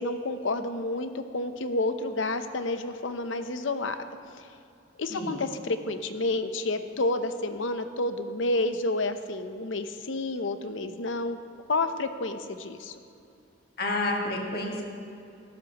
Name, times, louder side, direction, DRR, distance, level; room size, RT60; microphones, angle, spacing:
voice 1, 0.0-4.0 4.4-4.5 5.0-11.4 11.7-12.9, left 2 dB, 85° left, 9 dB, 0.8 m, -30 dB
voice 2, 13.8-14.8, left 2 dB, 50° left, -1 dB, 2.0 m, -29 dB
19.5 x 13.0 x 3.0 m, 2.6 s
head